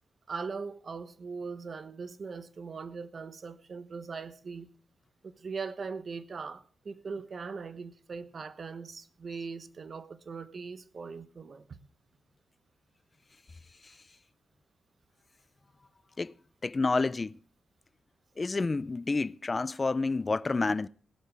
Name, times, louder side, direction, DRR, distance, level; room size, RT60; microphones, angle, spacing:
voice 1, 0.3-4.7 5.2-11.6, right 5 dB, 45° right, 1.1 m, -40 dB
voice 2, 16.6-17.4 18.4-20.9, left 3 dB, 30° left, 0.5 m, -29 dB
17.5 x 12.0 x 3.4 m
wide cardioid pair, 115°, 0 cm